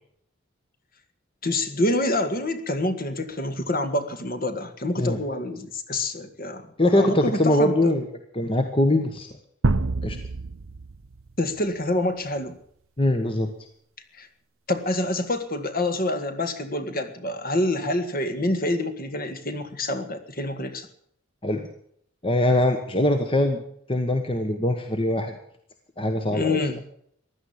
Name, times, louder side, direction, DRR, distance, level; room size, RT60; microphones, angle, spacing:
voice 1, 1.4-6.7 6.9-7.9 11.4-12.6 14.1-14.3 14.7-20.9 26.3-26.8, left 1 dB, 40° left, 8 dB, 1.8 m, -27 dB
voice 2, 6.8-8.1 8.3-9.3 10.0-10.2 13.0-13.5 21.4-21.6 22.2-23.6 23.9-25.3 26.0-26.6, left 1 dB, 25° left, 6 dB, 1.3 m, -22 dB
sound 1, 9.6-11.6, right 3 dB, 75° right, 0.8 m, -27 dB
16.0 x 11.5 x 7.2 m, 0.66 s
head